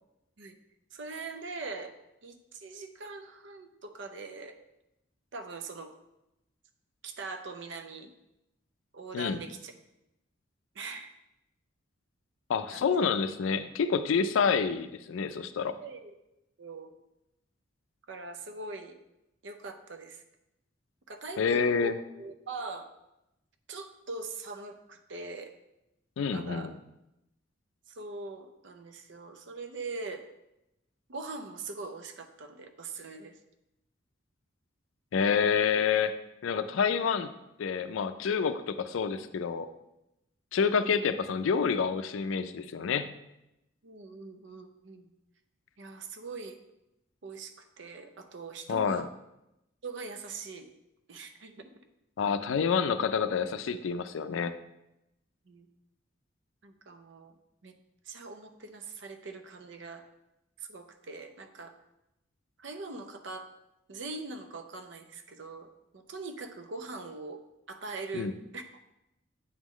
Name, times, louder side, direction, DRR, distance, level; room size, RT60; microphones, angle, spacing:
voice 1, 0.9-1.9 2.2-4.6 5.3-5.9 7.0-8.1 8.9-9.7 10.7-11.1 12.7-13.1 15.8-16.1 16.6-16.9 18.1-19.0 19.4-20.2 21.1-21.9 22.2-22.9 23.7-25.5 26.2-26.7 27.9-30.2 31.1-33.4 40.8-41.0 43.8-45.1 45.8-46.6 47.2-49.1 49.8-50.7 51.1-51.7 55.5-55.7 56.6-57.4 57.6-57.7 58.1-60.0 60.6-61.7 62.6-63.5 63.9-67.4 67.7-68.7, right 3 dB, 65° right, 7 dB, 0.6 m, -42 dB
voice 2, 12.5-15.8 21.4-21.9 26.2-26.7 35.1-36.2 36.4-37.3 37.6-39.7 40.5-43.1 48.7-49.1 52.2-54.5 68.1-68.3, left 6 dB, 80° left, 11 dB, 0.4 m, -28 dB
8.6 x 3.0 x 3.7 m, 0.89 s
head